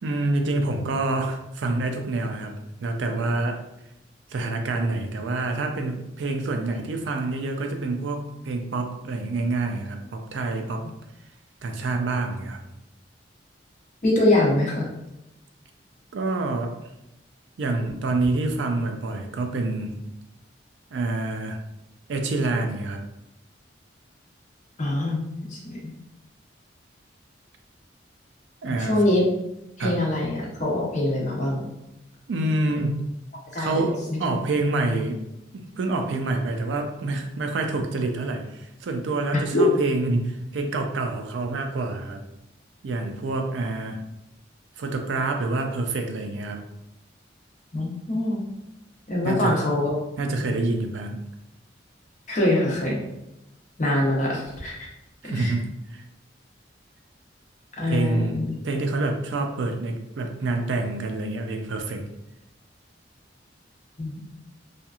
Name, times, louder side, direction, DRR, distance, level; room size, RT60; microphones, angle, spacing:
voice 1, 0.0-2.5 2.8-3.6 4.3-10.8 11.6-12.6 16.1-16.7 17.6-19.9 20.9-21.6 22.1-23.0 28.6-28.9 29.8-30.0 32.3-32.9 33.5-35.2 35.5-42.2 42.8-44.0 44.8-46.6 49.2-49.6 50.2-51.2 55.2-55.7 55.9-56.0 57.9-58.4 58.6-62.0, right 2 dB, 85° right, 4 dB, 0.4 m, -27 dB
voice 2, 14.0-14.8 24.8-25.8 28.7-29.2 29.8-31.6 33.5-33.9 34.2-34.3 39.5-39.7 47.7-48.4 49.1-50.0 52.3-53.0 53.8-54.9 55.3-55.5 57.8-58.5 64.0-64.3, left 1 dB, 40° left, -3 dB, 0.7 m, -24 dB
2.9 x 2.4 x 2.3 m, 0.88 s
head